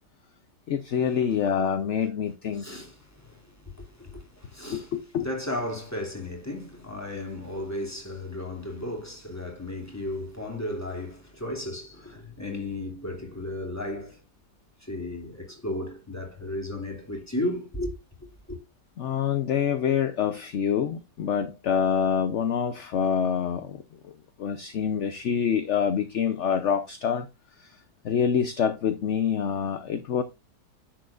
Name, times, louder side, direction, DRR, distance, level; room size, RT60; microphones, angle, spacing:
voice 1, 0.7-2.8 4.7-5.3 19.0-23.8 24.4-27.3 27.6-27.8 28.0-30.2, left 7 dB, 55° left, 0.9 m, -26 dB
voice 2, 2.5-4.9 5.2-14.2 14.8-17.9 18.5-18.6, left 1 dB, 10° left, 2.7 m, -34 dB
10.0 x 7.8 x 2.5 m
omnidirectional pair, 1.8 m